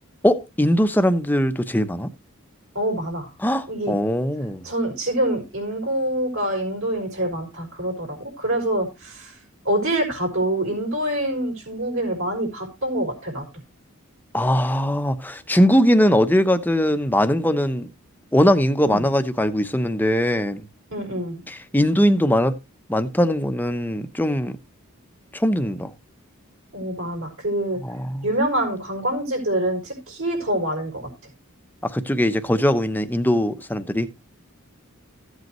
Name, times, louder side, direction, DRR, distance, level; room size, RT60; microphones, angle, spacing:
voice 1, 0.2-2.1 3.4-4.7 14.3-17.9 18.3-20.7 21.5-22.5 22.9-24.5 25.3-25.9 27.8-28.3 31.8-34.1, equal, 10° left, 0.8 m, -20 dB
voice 2, 2.7-3.3 3.7-3.9 4.6-9.4 9.6-13.4 18.9-19.1 20.9-21.4 26.7-27.8 28.2-31.0, right 1 dB, 65° right, 5.1 m, -25 dB
15.0 x 8.0 x 3.1 m
head